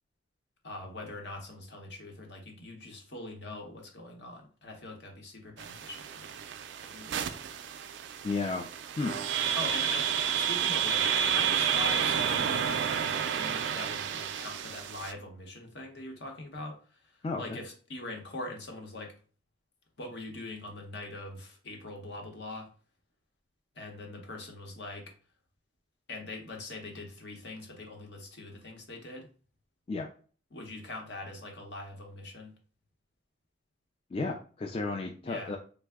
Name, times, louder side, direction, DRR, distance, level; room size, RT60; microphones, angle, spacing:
voice 1, 0.6-6.4 6.8-7.4 9.6-19.1 20.0-22.7 23.7-25.1 26.1-29.3 30.5-32.5 35.2-35.6, left 2 dB, 65° left, 2 dB, 0.8 m, -42 dB
sound 1, 5.6-15.1, right 8 dB, 80° right, 0.3 m, -30 dB
voice 2, 8.2-8.7 9.0-9.2 17.2-17.4 29.9-30.1 34.1-35.6, left 3 dB, 30° left, 2 dB, 0.3 m, -33 dB
3.3 x 2.0 x 3.5 m, 0.40 s
head